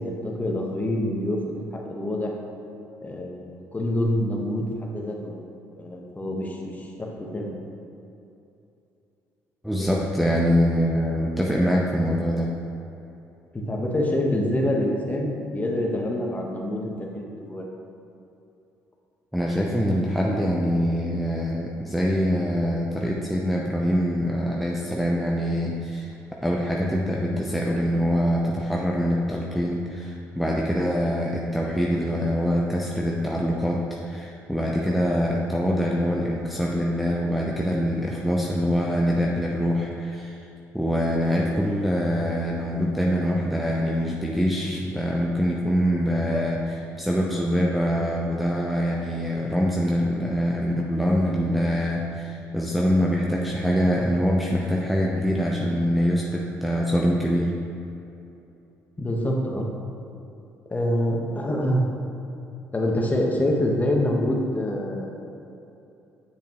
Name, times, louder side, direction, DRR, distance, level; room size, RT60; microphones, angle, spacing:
voice 1, 0.0-2.3 3.0-5.3 5.8-7.5 13.5-17.7 59.0-59.7 60.7-61.9 62.7-65.1, left 1 dB, 25° left, 0 dB, 1.3 m, -26 dB
voice 2, 9.6-12.5 19.3-26.1 26.4-40.5 40.7-57.5, equal, ahead, -3 dB, 0.7 m, -24 dB
7.8 x 6.7 x 3.0 m, 2.8 s
supercardioid pair, 70°, 7 cm